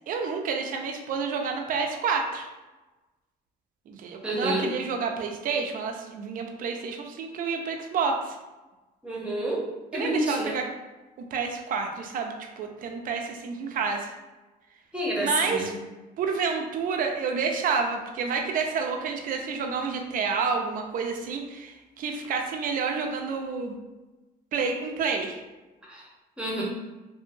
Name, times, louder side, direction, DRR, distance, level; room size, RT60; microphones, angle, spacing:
voice 1, 0.1-2.5 3.9-8.4 9.9-10.7 11.3-14.2 15.1-15.7 16.2-23.8 24.5-25.4, right 5 dB, 55° right, 3 dB, 0.5 m, -29 dB
voice 2, 4.2-4.7 9.0-9.6 9.9-10.6 14.9-15.7 25.9-26.1 26.4-26.6, right 1 dB, 5° right, -5 dB, 0.9 m, -28 dB
2.8 x 2.7 x 2.6 m, 1.1 s
cardioid pair, 110°, 17 cm